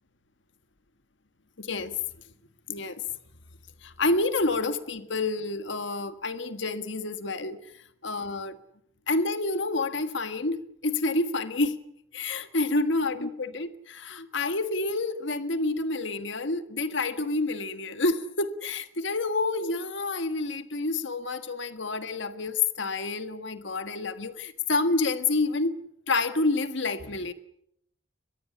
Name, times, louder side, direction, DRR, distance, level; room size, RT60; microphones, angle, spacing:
voice 1, 1.6-2.0 2.7-3.0 3.8-7.6 8.0-8.6 9.1-11.8 12.1-25.7 26.1-27.3, left 3 dB, 65° left, 1.7 m, -28 dB
23.5 x 22.0 x 8.6 m
head